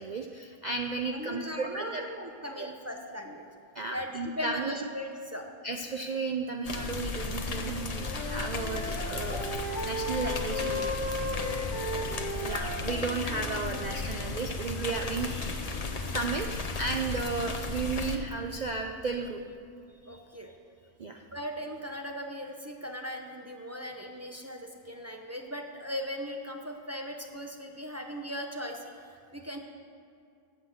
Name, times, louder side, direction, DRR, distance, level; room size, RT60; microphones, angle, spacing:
voice 1, 0.0-2.0 2.6-2.7 3.7-4.9 5.6-9.5 9.8-11.0 11.3-11.4 12.4-15.3 16.1-16.5 16.8-19.4 20.1-20.2 21.0-21.2, right 4 dB, 80° right, 3 dB, 0.4 m, -34 dB
voice 2, 1.1-3.5 3.9-5.5 11.8-12.1 20.1-20.5 21.3-29.6, equal, 20° right, 2 dB, 0.5 m, -39 dB
sound 1, 6.6-18.2, left 3 dB, 35° left, 0.6 m, -35 dB
Wind instrument woodwind instrument, 7.7-14.2, left 1 dB, 50° left, 1.3 m, -36 dB
9.6 x 8.1 x 7.9 m, 2.4 s
omnidirectional pair, 1.6 m